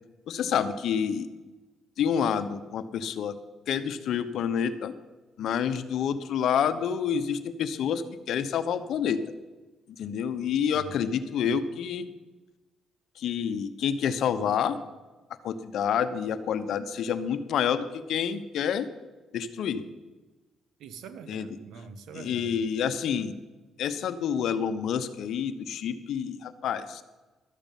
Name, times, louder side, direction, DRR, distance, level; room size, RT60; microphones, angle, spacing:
voice 1, 0.3-1.3 2.0-3.3 3.7-4.9 5.4-9.2 10.0-12.1 13.2-14.8 15.4-18.9 19.3-19.8 21.3-21.5 22.1-23.3 23.8-27.0, left 8 dB, 75° left, 11 dB, 1.0 m, -28 dB
voice 2, 10.7-11.1 20.8-22.7, right 5 dB, 80° right, 10 dB, 1.1 m, -44 dB
12.5 x 6.8 x 9.2 m, 1.2 s
cardioid pair, 90°, 0 cm